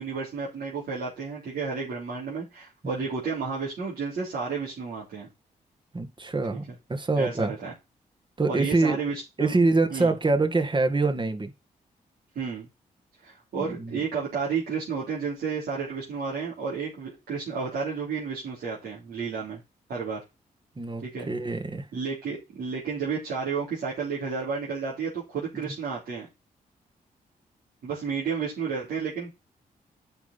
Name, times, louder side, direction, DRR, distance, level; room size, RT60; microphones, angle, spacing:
voice 1, 0.0-5.3 6.5-6.6 7.2-7.7 8.5-9.6 9.9-10.1 12.3-12.7 13.2-19.6 19.9-20.2 21.0-21.3 21.9-26.3 27.8-29.3, right 5 dB, 80° right, 3.4 m, -32 dB
voice 2, 5.9-7.5 8.4-9.0 9.4-11.5 13.6-14.0 20.8-21.9 25.5-25.7, right 3 dB, 30° right, 1.8 m, -25 dB
9.0 x 5.5 x 4.2 m
cardioid pair, 60°, 16 cm